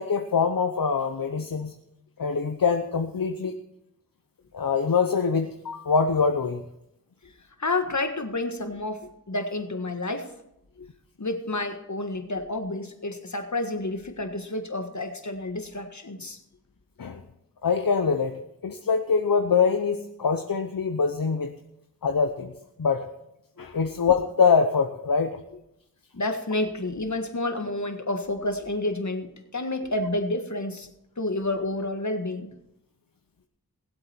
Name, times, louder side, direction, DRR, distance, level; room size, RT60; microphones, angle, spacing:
voice 1, 0.0-1.7 2.2-3.6 4.5-6.6 17.0-17.2 17.6-21.5 22.0-22.5 22.8-23.1 23.6-25.4, left 5 dB, 65° left, 6 dB, 0.8 m, -24 dB
voice 2, 7.6-10.3 10.8-10.9 11.2-16.4 23.6-23.7 26.1-30.9 31.2-32.6, left 2 dB, 50° left, 6 dB, 1.7 m, -30 dB
19.5 x 7.9 x 4.5 m, 0.83 s
wide cardioid pair, 40°, 36 cm